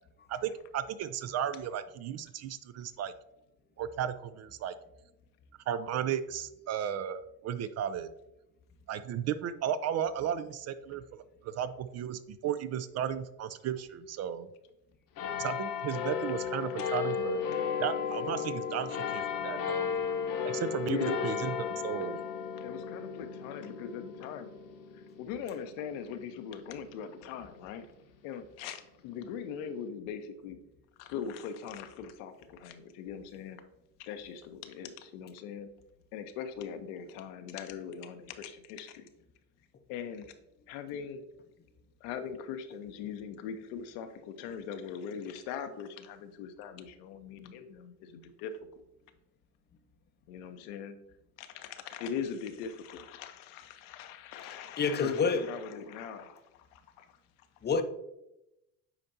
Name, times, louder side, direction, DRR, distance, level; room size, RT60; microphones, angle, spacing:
voice 1, 0.3-3.1 3.8-4.7 5.7-8.1 8.9-11.0 11.4-14.5 15.4-17.4 17.8-19.9 20.4-21.5 21.8-22.2, right 9 dB, 40° right, 0.4 m, -34 dB
sound 1, 15.2-28.0 28.7-28.8, left 7 dB, 45° left, 1.0 m, -35 dB
voice 2, 20.9-21.3 22.6-24.5 24.9-27.9 28.2-30.6 31.0-33.6 34.0-35.7 36.1-39.1 39.9-40.3 40.7-41.2 42.0-48.5 50.3-51.0 51.4-56.4 56.7-57.1, left 7 dB, 70° left, 0.9 m, -40 dB
voice 3, 54.8-55.5 55.7-55.9 57.6-57.8, left 4 dB, 25° left, 0.6 m, -28 dB
8.9 x 4.3 x 2.7 m
hypercardioid pair, 75°, 44 cm